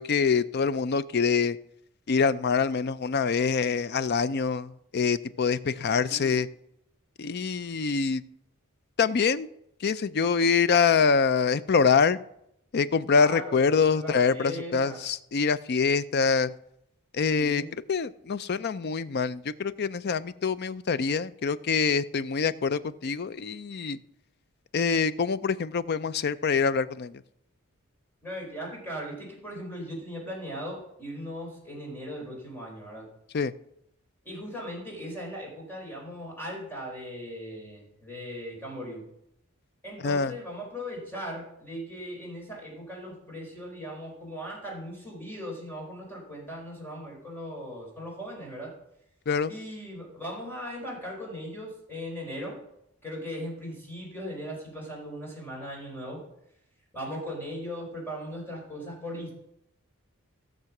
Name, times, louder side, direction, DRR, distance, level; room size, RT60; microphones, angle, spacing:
voice 1, 0.0-1.6 2.1-6.5 7.2-8.2 9.0-9.5 9.8-12.2 12.7-16.5 17.1-17.6 17.9-24.0 24.7-27.2 33.3-33.5 40.0-40.3 49.3-49.5, left 5 dB, 50° left, 16 dB, 0.5 m, -25 dB
voice 2, 6.0-6.3 13.1-15.0 17.4-17.7 28.2-33.1 34.2-39.0 39.8-48.7 49.5-52.6 53.0-56.2 56.9-59.3, equal, 10° left, -2 dB, 4.3 m, -38 dB
16.0 x 6.7 x 6.0 m, 0.78 s
head